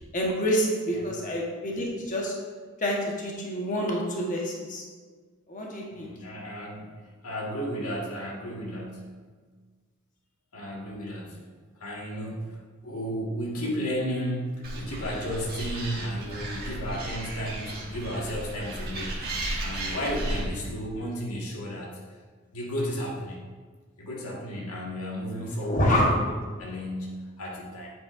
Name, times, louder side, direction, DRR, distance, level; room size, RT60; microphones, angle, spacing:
voice 1, 0.1-2.3 2.8-4.8 5.5-6.1 25.6-26.1, equal, 35° left, -2 dB, 1.2 m, -27 dB
voice 2, 5.9-9.2 10.5-11.4 11.8-12.6 12.8-22.0 22.5-23.4 24.0-27.9, equal, 85° left, -3 dB, 1.7 m, -33 dB
Animal, 14.6-20.4, right 1 dB, 45° right, 1.7 m, -34 dB
8.1 x 7.7 x 2.5 m, 1.5 s
head